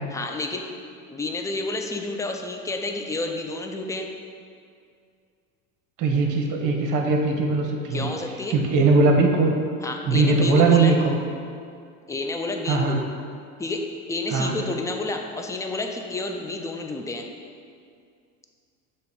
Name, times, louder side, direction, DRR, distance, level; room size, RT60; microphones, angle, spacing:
voice 1, 0.1-0.7 1.1-4.1 7.9-8.6 9.8-10.9 12.1-13.0 13.6-17.3, left 2 dB, 10° left, 3 dB, 0.4 m, -30 dB
voice 2, 6.0-8.1 8.5-9.5 10.1-11.1 12.7-13.0 14.3-14.6, right 3 dB, 50° right, 2 dB, 1.0 m, -20 dB
6.9 x 3.0 x 4.7 m, 2.3 s
hypercardioid pair, 80°, 39 cm